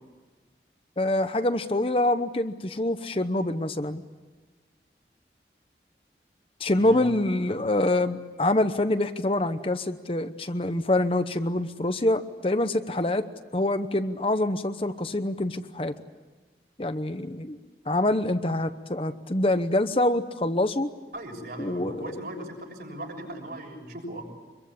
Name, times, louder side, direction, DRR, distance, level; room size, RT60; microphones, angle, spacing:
voice 1, 1.0-4.0 6.6-13.3 13.5-15.9 16.8-17.6 17.9-20.9 21.6-22.2, left 1 dB, 30° left, 9 dB, 0.9 m, -25 dB
voice 2, 21.1-24.2, right 1 dB, 60° right, 1 dB, 6.7 m, -38 dB
25.5 x 22.5 x 8.7 m, 1.4 s
head